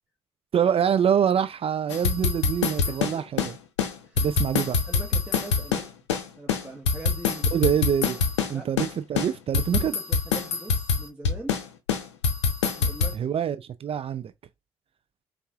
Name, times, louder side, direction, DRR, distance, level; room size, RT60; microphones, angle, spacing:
voice 1, 0.5-3.5 4.2-4.8 7.5-8.2 8.5-9.9 13.1-14.3, right 8 dB, 45° right, 0.4 m, -25 dB
sound 1, 1.9-3.5 3.8-3.9 4.2-6.2 6.5-8.5 8.8-8.9 9.2-11.6 11.9-13.1, left 5 dB, 85° left, 0.5 m, -24 dB
voice 2, 2.8-3.2 4.0-4.3 4.8-5.9 6.4-7.7 8.5-8.9 9.7-11.6 12.8-13.4, right 2 dB, 10° right, 1.3 m, -42 dB
5.3 x 2.4 x 2.3 m
hypercardioid pair, 40°, 14 cm